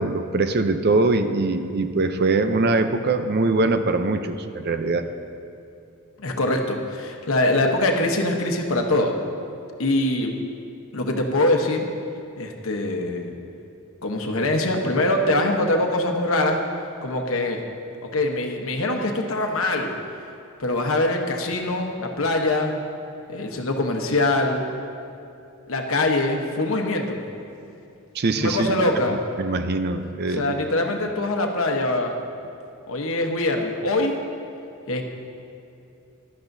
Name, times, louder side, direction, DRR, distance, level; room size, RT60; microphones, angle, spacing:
voice 1, 0.0-5.1 28.1-28.9 29.4-30.5, right 3 dB, 45° right, 8 dB, 0.6 m, -22 dB
voice 2, 6.2-9.2 9.8-10.3 10.9-11.9 12.4-13.3 14.0-16.6 17.0-17.6 18.0-19.9 20.6-22.8 23.3-24.7 25.7-27.2 28.3-29.2 30.3-32.1 32.9-34.2 34.9-35.0, left 2 dB, 65° left, 3 dB, 1.1 m, -23 dB
16.0 x 11.5 x 2.7 m, 2.7 s
head